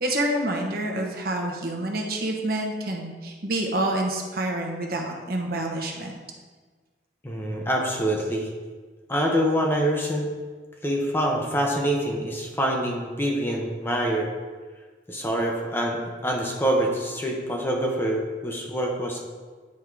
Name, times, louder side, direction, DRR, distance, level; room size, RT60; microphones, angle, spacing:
voice 1, 0.0-6.1, right 1 dB, 55° right, 1 dB, 1.0 m, -27 dB
voice 2, 7.2-8.5 9.1-10.3 10.8-14.3 15.1-19.2, equal, 10° left, -1 dB, 0.8 m, -25 dB
9.5 x 3.6 x 4.7 m, 1.4 s
head